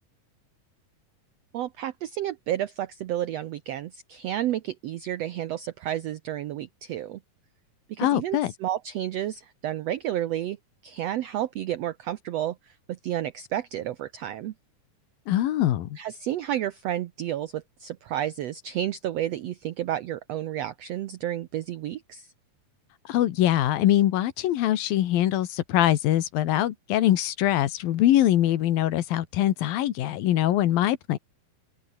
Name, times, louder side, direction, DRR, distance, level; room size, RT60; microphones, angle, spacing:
voice 1, 1.5-7.2 7.9-10.6 10.8-14.5 16.0-22.3, right 12 dB, 85° right, 1.4 m, -31 dB
voice 2, 8.0-8.5 15.3-15.9 23.1-31.2, left 13 dB, 90° left, 3.2 m, -23 dB
omnidirectional pair, 4.0 m